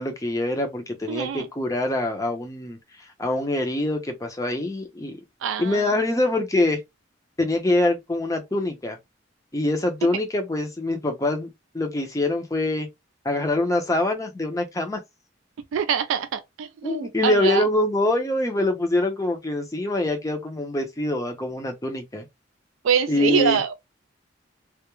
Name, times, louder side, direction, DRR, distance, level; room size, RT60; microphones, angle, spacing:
voice 1, 0.0-5.2 5.6-6.8 7.4-9.0 9.5-11.5 11.7-12.9 13.2-15.0 16.8-22.3 23.1-23.6, left 2 dB, 15° left, 0.5 m, -24 dB
voice 2, 1.1-1.5 5.4-5.9 15.7-17.6 22.8-23.7, right 7 dB, 90° right, 0.3 m, -24 dB
2.2 x 2.0 x 2.9 m
head